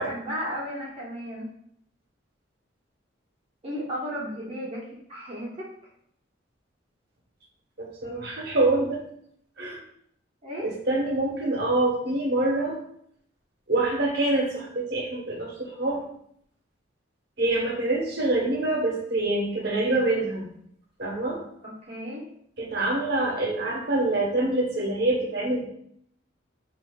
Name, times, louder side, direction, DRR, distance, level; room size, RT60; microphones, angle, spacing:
voice 1, 0.0-1.5 3.6-5.7 10.4-10.7 21.6-22.2, equal, 30° right, -6 dB, 1.2 m, -34 dB
voice 2, 7.8-9.0 9.6-9.8 10.6-12.8 13.7-16.0 17.4-20.5 21.0-21.4 22.6-25.6, right 2 dB, 55° right, -1 dB, 1.1 m, -25 dB
6.4 x 2.8 x 2.3 m, 0.69 s
head